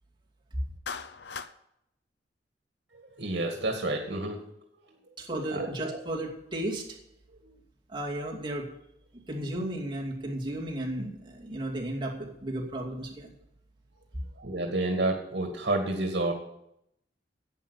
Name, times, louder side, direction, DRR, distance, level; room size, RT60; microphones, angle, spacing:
Clapping, 0.9-1.5, left 5 dB, 70° left, 0.8 m, -38 dB
voice 1, 2.9-4.4 5.5-5.7 14.4-16.3, right 2 dB, 70° right, 2 dB, 2.0 m, -29 dB
voice 2, 5.2-7.0 7.9-8.7 9.1-13.3 14.1-14.2, right 1 dB, 30° right, -2 dB, 2.5 m, -34 dB
11.0 x 8.5 x 8.3 m, 0.79 s
head